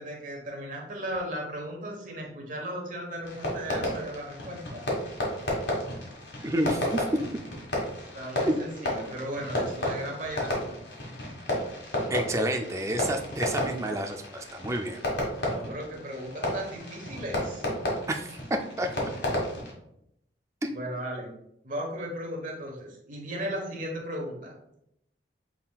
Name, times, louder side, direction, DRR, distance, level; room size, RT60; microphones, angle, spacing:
voice 1, 0.0-4.8 8.1-10.8 15.4-17.6 20.7-21.3 21.6-24.5, equal, 50° right, 0 dB, 1.2 m, -36 dB
Fireworks, 3.2-19.7, left 1 dB, 75° left, 1.6 m, -32 dB
voice 2, 6.4-7.1 8.5-8.6 12.1-15.0 18.1-18.9 20.6-20.7, right 1 dB, 15° right, 4 dB, 0.4 m, -29 dB
5.6 x 3.7 x 2.3 m, 0.78 s
head